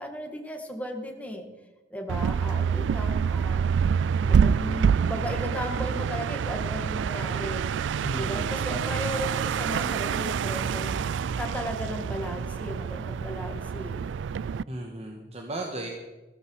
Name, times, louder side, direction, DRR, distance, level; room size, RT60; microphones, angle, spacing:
voice 1, 0.0-1.5 1.9-3.6 4.2-7.6 8.2-11.1 11.4-14.1, equal, 10° left, 2 dB, 2.1 m, -36 dB
sound 1, 2.1-14.6, right 6 dB, 80° right, 0.3 m, -27 dB
voice 2, 8.0-8.5 14.7-15.9, right 1 dB, 35° right, 1 dB, 1.7 m, -35 dB
14.5 x 14.0 x 4.8 m, 1.2 s
head